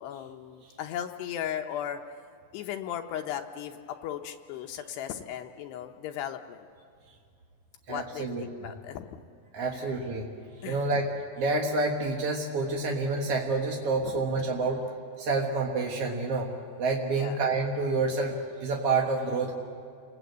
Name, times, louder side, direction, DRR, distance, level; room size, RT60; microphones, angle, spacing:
voice 1, 0.0-2.0 2.5-6.7 7.9-9.2 9.7-9.9 10.6-10.9 14.0-14.1 17.1-17.4, left 10 dB, 80° left, 4 dB, 2.8 m, -37 dB
voice 2, 7.9-8.4 9.5-10.3 10.6-11.1 11.4-14.8 15.2-16.5 16.8-19.5, right 3 dB, 55° right, 0 dB, 1.7 m, -28 dB
29.5 x 21.0 x 8.1 m, 2.3 s
omnidirectional pair, 4.9 m